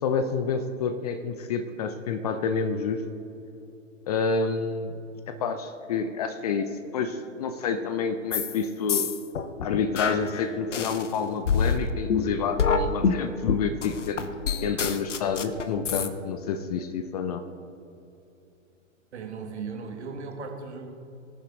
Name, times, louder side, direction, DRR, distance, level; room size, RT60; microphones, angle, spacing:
voice 1, 0.0-3.0 4.1-4.9 5.3-9.1 9.6-14.2 14.6-17.4, left 5 dB, 30° left, 8 dB, 0.6 m, -28 dB
sound 1, 8.3-8.6 8.9-11.1 11.5-16.1, left 5 dB, 65° left, 0.8 m, -26 dB
voice 2, 19.1-20.9, right 4 dB, 55° right, 3 dB, 1.8 m, -37 dB
20.0 x 7.3 x 4.0 m, 2.8 s
figure-of-eight pair, 110°, 39 cm